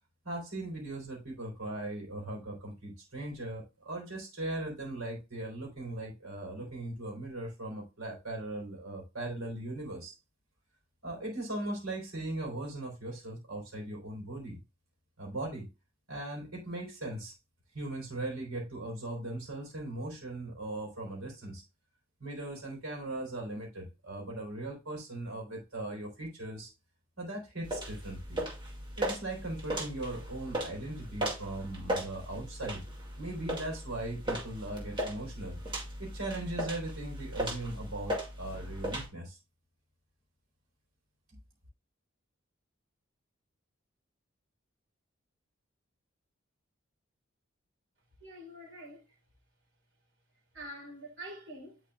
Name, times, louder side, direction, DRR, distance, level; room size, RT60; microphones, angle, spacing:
voice 1, 0.2-10.2 11.0-14.6 15.2-15.7 16.1-17.3 17.7-21.6 22.2-26.7 27.2-28.4 29.0-32.8 33.2-35.6 36.0-39.4 41.3-41.4, right 1 dB, 90° right, 3.6 m, -39 dB
sound 1, 27.6-39.1, right 1 dB, 20° right, 2.3 m, -37 dB
voice 2, 48.2-49.0 50.5-51.8, right 1 dB, 55° right, 3.9 m, -45 dB
10.0 x 4.9 x 2.4 m
head